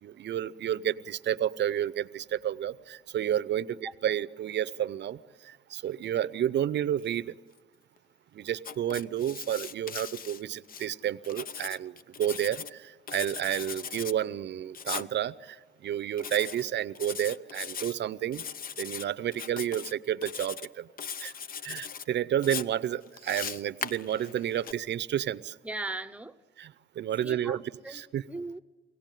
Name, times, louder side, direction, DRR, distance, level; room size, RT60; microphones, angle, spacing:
voice 1, 0.0-7.3 8.3-18.4 18.8-20.9 21.2-21.3 21.6-25.5 26.6-27.6 27.9-28.2, right 11 dB, 60° right, 15 dB, 0.7 m, -31 dB
Writing, 8.6-10.9 11.2-12.7 13.1-14.1 14.7-15.1 16.2-16.6 16.9-17.9 18.3-19.0 19.3-19.9 20.2-20.7 21.0-22.0 22.4-24.7, left 7 dB, 45° left, 0.7 m, -39 dB
voice 2, 25.6-26.4 27.2-28.6, right 2 dB, 5° right, 11 dB, 0.9 m, -38 dB
24.0 x 17.0 x 9.2 m, 1.4 s
cardioid pair, 90°, 20 cm